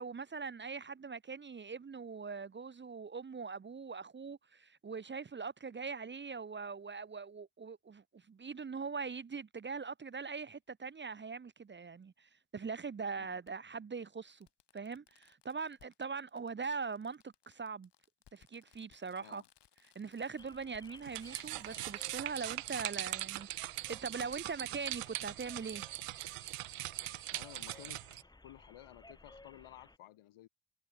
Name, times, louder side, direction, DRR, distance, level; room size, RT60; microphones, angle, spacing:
voice 1, 0.0-14.5 14.7-17.9 18.3-19.4 19.9-25.8, right 5 dB, 20° right, 0.9 m, -42 dB
Fireworks, 10.1-10.2 11.8-11.9 13.5-13.6 14.1-14.2 14.4-23.3 23.6-23.7, left 10 dB, 55° left, 4.0 m, -67 dB
sound 1, 20.4-30.0, left 2 dB, 10° left, 1.4 m, -59 dB
sound 2, 21.0-28.2, right 16 dB, 90° right, 1.6 m, -41 dB
voice 2, 27.3-28.0 28.3-30.5, left 14 dB, 80° left, 2.9 m, -54 dB
cardioid pair, 170°, 50 cm